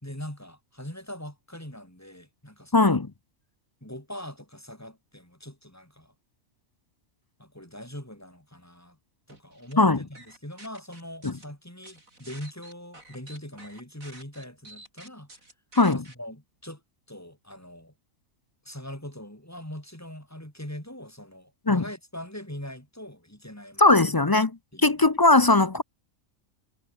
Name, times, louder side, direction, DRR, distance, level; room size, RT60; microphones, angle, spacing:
voice 1, 0.0-3.0 3.8-6.1 7.4-9.0 9.3-15.3 15.9-16.8 17.1-17.9 18.7-23.9 24.7-25.0 25.4-25.5, left 1 dB, 10° left, 5.2 m, -41 dB
voice 2, 2.7-3.1 9.8-10.0 11.2-11.3 15.8-16.0 21.7-21.8 23.8-24.5 24.8-25.8, left 2 dB, 30° left, 0.4 m, -19 dB
sound 1, 9.3-9.7 10.1-11.5 11.8-16.1, right 2 dB, 80° right, 7.2 m, -49 dB
omnidirectional pair, 1.4 m